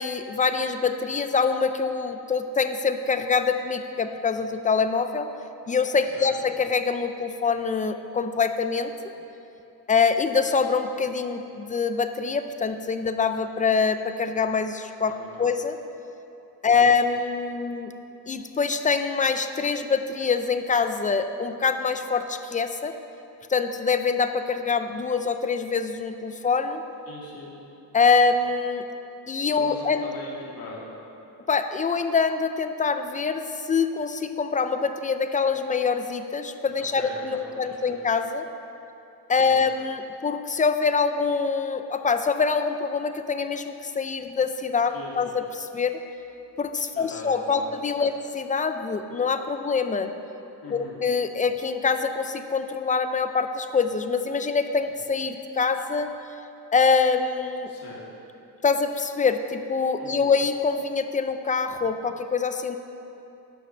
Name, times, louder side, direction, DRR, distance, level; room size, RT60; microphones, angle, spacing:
voice 1, 0.0-5.3 5.7-8.9 9.9-15.1 15.4-15.8 16.6-17.9 18.3-22.9 23.5-26.8 27.9-28.8 29.3-30.1 31.5-38.4 39.3-46.0 46.6-50.1 50.7-56.1 56.7-57.7 58.6-62.8, left 5 dB, 20° left, 8 dB, 0.3 m, -25 dB
voice 2, 15.0-15.5 16.7-16.9 27.1-27.5 29.5-30.9 36.9-37.1 37.4-38.0 39.4-39.6 44.9-45.1 46.9-47.7 50.6-51.0 57.7-58.0 60.0-60.3, left 2 dB, 60° left, -4 dB, 2.2 m, -41 dB
10.0 x 5.8 x 6.3 m, 2.8 s
wide cardioid pair, 160°, 40 cm